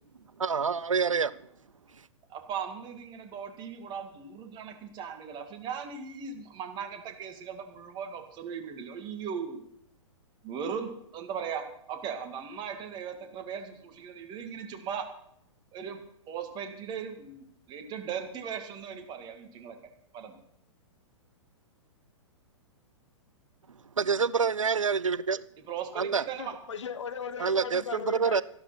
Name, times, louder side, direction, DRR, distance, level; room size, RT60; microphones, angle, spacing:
voice 1, 0.4-1.3 24.0-25.4 26.0-26.3 27.4-28.4, right 5 dB, 80° right, 19 dB, 0.5 m, -27 dB
voice 2, 2.3-9.6 10.4-15.1 15.7-19.8 20.1-20.4 25.7-26.5, right 7 dB, 25° right, 5 dB, 2.2 m, -38 dB
voice 3, 26.4-28.4, left 6 dB, 65° left, 12 dB, 1.3 m, -37 dB
13.0 x 12.0 x 5.9 m, 0.71 s
figure-of-eight pair, 110°, 16 cm